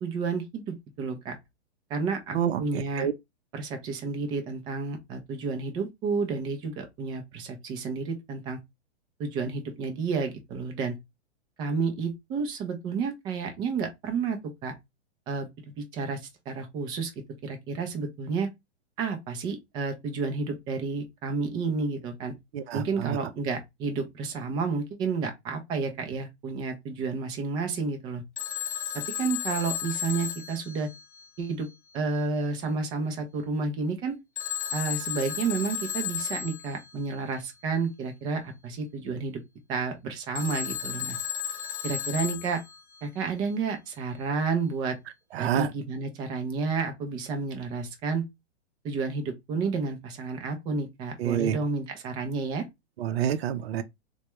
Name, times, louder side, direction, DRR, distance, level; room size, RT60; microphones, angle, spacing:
voice 1, 0.0-1.4 1.9-3.1 3.5-8.6 9.2-10.9 11.6-14.7 15.3-15.5 15.8-17.1 17.4-18.5 19.0-22.3 22.7-28.2 28.9-30.9 31.4-31.7 31.9-34.2 34.7-39.4 39.7-41.2 41.8-42.6 43.0-45.0 45.4-48.2 48.8-52.7, right 4 dB, 15° right, 0.3 m, -31 dB
voice 2, 22.5-23.2 45.3-45.7 51.2-51.6 53.0-53.8, right 10 dB, 60° right, 0.6 m, -27 dB
Telephone, 28.4-31.5 34.4-36.9 40.4-43.0, left 10 dB, 20° left, 0.7 m, -34 dB
3.2 x 2.2 x 2.9 m
hypercardioid pair, 130°, 34 cm